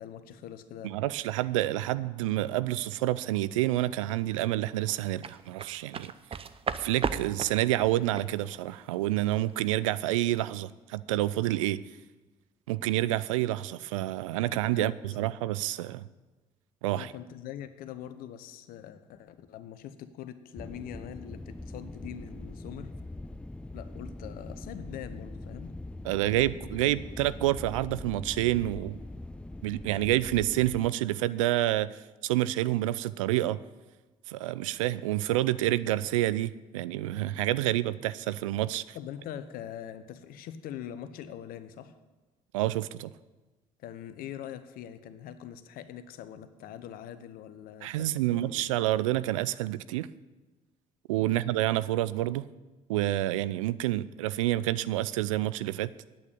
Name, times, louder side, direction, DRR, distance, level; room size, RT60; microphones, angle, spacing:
voice 1, 0.0-1.0 14.5-15.2 16.9-22.9 23.7-25.7 38.9-42.0 43.8-48.7 51.2-51.4, left 10 dB, 65° left, 12 dB, 0.9 m, -43 dB
voice 2, 0.8-6.1 6.8-11.8 12.7-16.1 16.8-17.1 26.0-29.0 29.6-33.6 34.3-39.0 42.5-43.1 47.8-50.1 51.1-52.5 52.9-55.9, right 15 dB, 80° right, 17 dB, 0.4 m, -28 dB
sound 1, 4.9-10.1 10.4-10.6, right 6 dB, 35° right, 0.7 m, -36 dB
sound 2, 20.6-30.9, left 2 dB, 5° left, 0.4 m, -42 dB
9.0 x 8.5 x 8.4 m, 1.2 s
hypercardioid pair, 55°, 16 cm